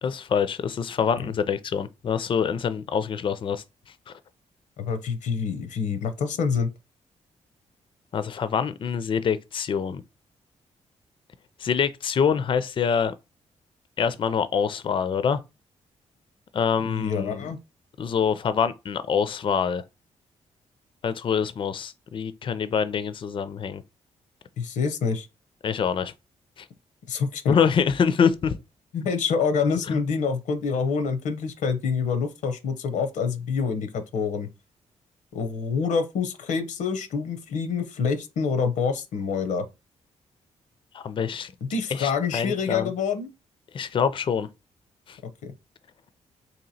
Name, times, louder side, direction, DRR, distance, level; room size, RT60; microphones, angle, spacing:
voice 1, 0.0-3.6 4.1-4.2 8.1-10.0 11.6-13.1 14.0-15.4 16.5-17.5 18.0-19.8 21.0-23.8 25.6-26.1 26.6-26.7 27.5-28.6 40.9-41.5 41.9-42.9 43.7-44.5 45.1-45.2, left 7 dB, 40° left, 0.4 m, -25 dB
voice 2, 4.8-6.7 16.8-17.6 24.6-25.3 27.1-27.6 28.9-34.5 35.3-39.7 41.6-43.3 45.4-45.5, left 5 dB, 85° left, 0.6 m, -26 dB
2.9 x 2.8 x 4.0 m
cardioid pair, 90°, 13 cm